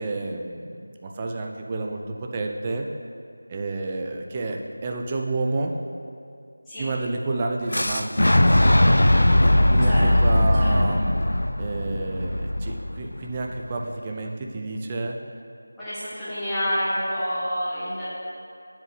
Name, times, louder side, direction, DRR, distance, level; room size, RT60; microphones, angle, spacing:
voice 1, 0.0-2.9 3.5-5.7 6.8-8.3 9.7-11.2 11.6-15.2, right 2 dB, 20° right, 1 dB, 0.4 m, -30 dB
Fire / Explosion, 7.7-13.6, left 1 dB, 70° left, 0.4 m, -19 dB
voice 2, 15.8-18.1, equal, 5° left, -17 dB, 1.8 m, -28 dB
9.3 x 7.4 x 3.3 m, 2.5 s
figure-of-eight pair, 170°, 0 cm